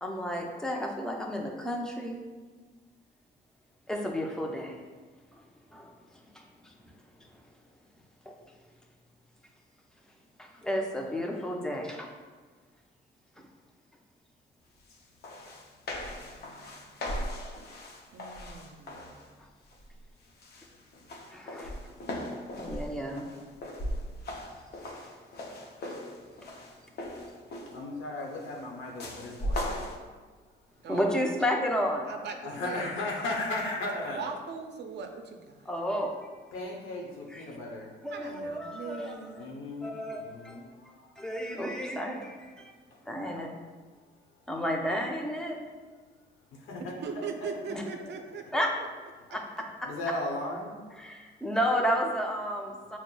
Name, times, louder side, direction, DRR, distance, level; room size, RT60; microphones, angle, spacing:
voice 1, 0.0-2.2 3.9-4.8 5.3-5.4 5.7-5.9 6.3-6.9 7.2-7.3 8.3-8.4 10.4-12.1 19.4-19.5 21.3-21.7 22.6-23.3 30.9-32.1 35.7-36.1 37.3-37.5 38.0-39.5 39.8-40.6 41.2-42.7 43.1-43.5 44.5-45.6 47.7-47.8 48.5-48.7 49.3-49.9 50.5-50.6 51.0-53.0, equal, 5° left, 1 dB, 0.5 m, -32 dB
sound 1, 14.9-15.0 15.2-19.3 19.7-20.1 20.4-27.9 29.0-30.0, left 1 dB, 55° left, 0.6 m, -38 dB
voice 2, 18.1-19.1 30.8-31.1 32.1-32.9 33.9-35.7 38.1-39.5 46.8-48.4, right 5 dB, 60° right, 4 dB, 0.5 m, -40 dB
voice 3, 27.7-29.9 32.4-34.2 36.5-38.5 39.4-41.1 42.9-43.6 46.5-47.5 49.9-50.8, left 2 dB, 85° left, -1 dB, 0.8 m, -37 dB
5.9 x 2.0 x 2.2 m, 1.4 s
cardioid pair, 90°, 20 cm